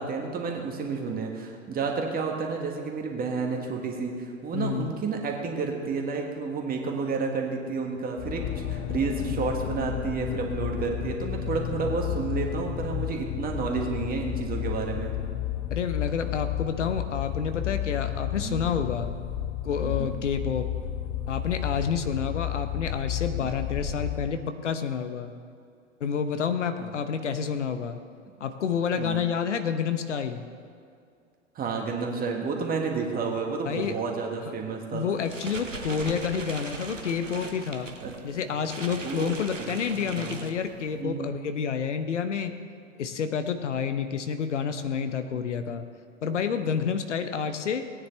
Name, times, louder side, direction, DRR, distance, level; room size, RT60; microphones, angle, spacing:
voice 1, 0.0-15.1 18.4-18.6 19.8-20.1 23.4-23.5 26.8-26.9 28.9-29.2 31.6-35.1 38.0-38.2 39.0-39.7 40.1-40.4 40.9-41.4 45.3-45.5, right 4 dB, 25° right, 1 dB, 1.8 m, -31 dB
voice 2, 4.5-4.9 15.7-19.1 19.6-20.7 21.3-25.3 26.0-28.0 28.4-30.4 33.7-34.0 34.9-37.9 38.2-42.5 43.0-45.8 46.2-47.9, left 7 dB, 70° left, 9 dB, 0.9 m, -29 dB
sound 1, 8.2-24.4, left 11 dB, 35° left, 0.6 m, -32 dB
sound 2, 35.1-41.0, right 4 dB, 85° right, 1.1 m, -40 dB
18.5 x 9.8 x 3.3 m, 2.4 s
figure-of-eight pair, 90°, 37 cm